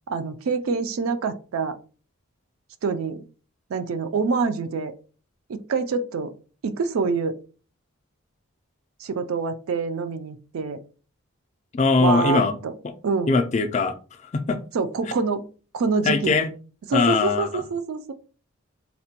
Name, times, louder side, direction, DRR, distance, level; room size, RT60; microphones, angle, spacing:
voice 1, 0.1-1.8 2.8-3.2 3.7-4.9 5.5-6.3 6.6-7.4 9.0-10.8 12.0-12.7 13.0-13.4 14.7-15.5 15.7-16.4 16.9-18.1, right 4 dB, 70° right, 10 dB, 0.4 m, -26 dB
voice 2, 11.7-12.6 13.3-13.9 14.2-14.6 16.0-16.5 16.9-17.6, left 4 dB, 30° left, 7 dB, 0.3 m, -21 dB
4.0 x 2.2 x 2.8 m, 0.37 s
head